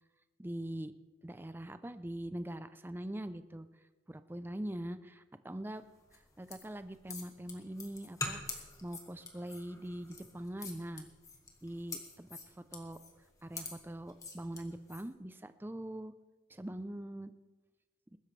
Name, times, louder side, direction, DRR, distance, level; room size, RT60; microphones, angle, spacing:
voice 1, 0.4-0.9 1.2-3.7 4.1-5.8 6.1-8.4 8.8-11.1 11.6-12.4 12.7-13.0 13.4-16.1 16.5-17.3, right 1 dB, 10° right, 11 dB, 0.5 m, -42 dB
sound 1, 6.1-15.1, left 3 dB, 20° left, 1.5 m, -45 dB
21.5 x 12.5 x 3.3 m, 1.2 s
head